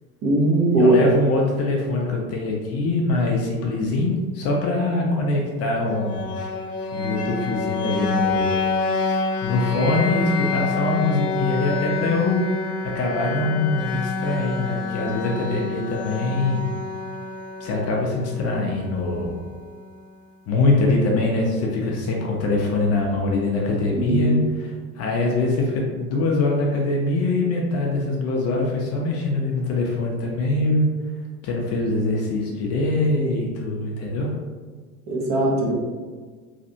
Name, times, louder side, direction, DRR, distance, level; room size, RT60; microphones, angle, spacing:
voice 1, 0.2-1.0 23.9-24.4 35.1-35.7, right 1 dB, 40° right, -2 dB, 0.9 m, -19 dB
voice 2, 0.8-6.3 6.9-8.5 9.1-16.6 17.6-19.4 20.5-30.9 31.4-34.3, left 2 dB, 35° left, -1 dB, 0.6 m, -23 dB
sound 1, 5.9-19.8, left 3 dB, 75° left, 0.6 m, -27 dB
3.2 x 2.5 x 2.7 m, 1.5 s
hypercardioid pair, 75°, 45 cm